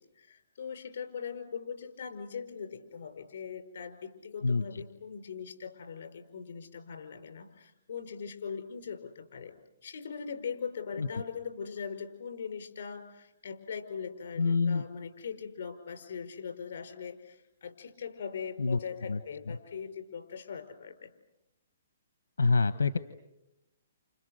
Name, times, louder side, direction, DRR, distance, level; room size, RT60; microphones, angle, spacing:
voice 1, 0.0-21.1, left 6 dB, 65° left, 6 dB, 4.9 m, -41 dB
voice 2, 4.4-4.8 11.0-11.1 14.4-14.8 18.6-18.8 19.1-19.2 22.4-23.0, left 4 dB, 90° left, 11 dB, 1.1 m, -26 dB
29.5 x 29.5 x 6.5 m, 0.91 s
hypercardioid pair, 145°, 0 cm